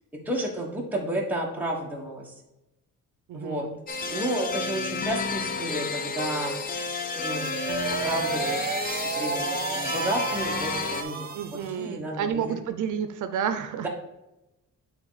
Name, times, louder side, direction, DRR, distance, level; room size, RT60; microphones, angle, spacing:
voice 1, 0.2-2.3 3.3-3.7 4.1-6.6 7.1-7.6 8.0-12.5, right 1 dB, 5° right, -2 dB, 1.2 m, -32 dB
voice 2, 3.3-3.8 11.3-13.9, right 8 dB, 75° right, 9 dB, 0.6 m, -30 dB
sound 1, 3.9-11.0, left 4 dB, 30° left, 0.5 m, -31 dB
sound 2, 7.0-11.8, right 5 dB, 30° right, 0.7 m, -32 dB
8.8 x 3.6 x 4.0 m, 0.95 s
cardioid pair, 165°, 31 cm